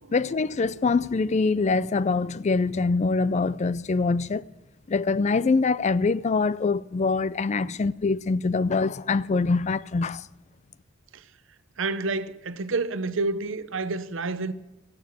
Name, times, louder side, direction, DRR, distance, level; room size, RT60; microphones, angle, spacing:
voice 1, 0.1-4.5 4.9-10.3, left 4 dB, 35° left, 0.4 m, -24 dB
voice 2, 11.8-14.5, right 3 dB, 65° right, 0.8 m, -29 dB
15.0 x 9.4 x 7.9 m
head